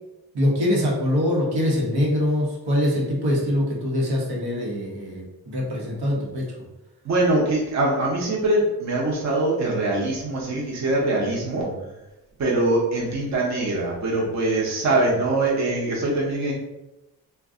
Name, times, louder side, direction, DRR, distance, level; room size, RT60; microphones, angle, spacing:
voice 1, 0.3-6.5 11.6-11.7, left 1 dB, 80° right, -3 dB, 1.0 m, -23 dB
voice 2, 7.0-11.7 12.4-16.5, right 2 dB, 45° right, -4 dB, 0.8 m, -23 dB
2.5 x 2.2 x 3.6 m, 0.97 s
cardioid pair, 115°, 39 cm